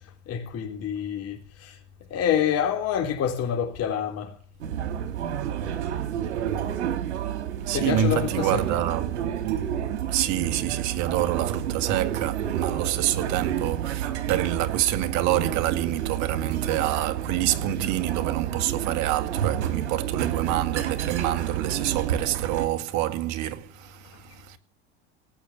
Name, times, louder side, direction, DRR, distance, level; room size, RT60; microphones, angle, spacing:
voice 1, 0.3-1.8 2.1-4.4 7.7-8.6, left 9 dB, 45° left, 3.8 m, -27 dB
sound 1, 4.6-22.7, right 10 dB, 85° right, 3.3 m, -30 dB
voice 2, 7.6-9.2 10.1-24.6, right 12 dB, 55° right, 2.1 m, -27 dB
18.0 x 8.7 x 8.5 m
supercardioid pair, 100°, 34 cm